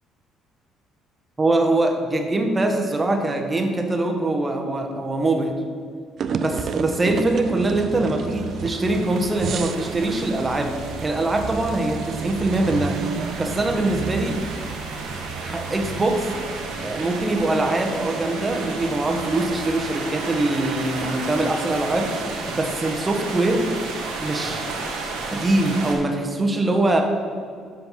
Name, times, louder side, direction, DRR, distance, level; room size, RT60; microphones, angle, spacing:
voice 1, 1.4-5.5 6.4-10.8 11.0-13.0 13.4-14.4 15.4-16.3 16.8-23.7 24.2-24.6 25.3-27.0, right 2 dB, 25° right, 4 dB, 1.2 m, -23 dB
sound 1, 6.2-22.6, right 6 dB, 55° right, 0.4 m, -34 dB
sound 2, 8.0-26.0, right 3 dB, 85° right, 1.5 m, -33 dB
7.3 x 5.2 x 5.6 m, 2.2 s
supercardioid pair, 75°, 0 cm